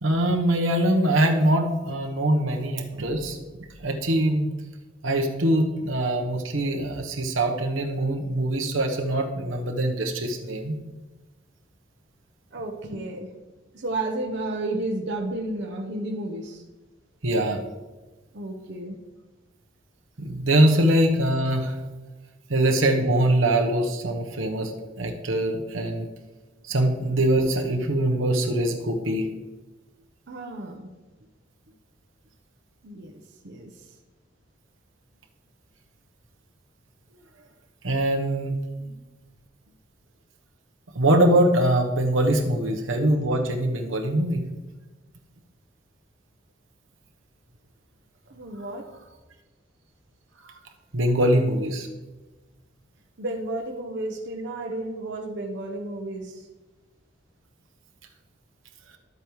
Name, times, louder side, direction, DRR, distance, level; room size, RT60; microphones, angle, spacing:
voice 1, 0.0-3.4 3.8-4.5 5.0-10.7 17.2-17.6 20.2-21.8 22.5-24.7 25.0-26.1 26.7-29.3 37.8-38.5 40.9-44.5 50.4-50.5 50.9-51.9, right 1 dB, 90° right, 3 dB, 1.0 m, -23 dB
voice 2, 12.5-13.3 13.7-16.6 18.3-19.0 30.3-30.9 32.8-33.7 38.8-38.9 48.3-48.9 53.2-56.4, right 2 dB, 65° right, 1 dB, 0.9 m, -32 dB
12.0 x 8.2 x 3.1 m, 1.2 s
head